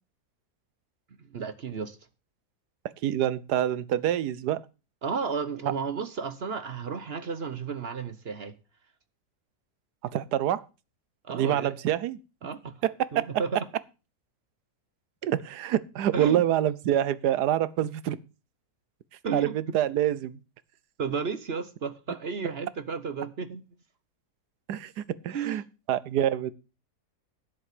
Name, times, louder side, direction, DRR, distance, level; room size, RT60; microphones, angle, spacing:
voice 1, 1.2-2.0 5.0-8.5 11.2-11.7 12.4-12.8 13.1-13.7 16.1-16.4 19.2-19.5 21.0-23.6 25.3-25.6, right 5 dB, 45° right, 1.0 m, -33 dB
voice 2, 3.0-4.6 10.1-10.6 11.3-12.2 12.8-13.3 15.2-18.2 19.3-20.4 24.7-25.6 25.9-26.5, right 11 dB, 85° right, 1.3 m, -26 dB
10.0 x 7.8 x 6.7 m
omnidirectional pair, 1.7 m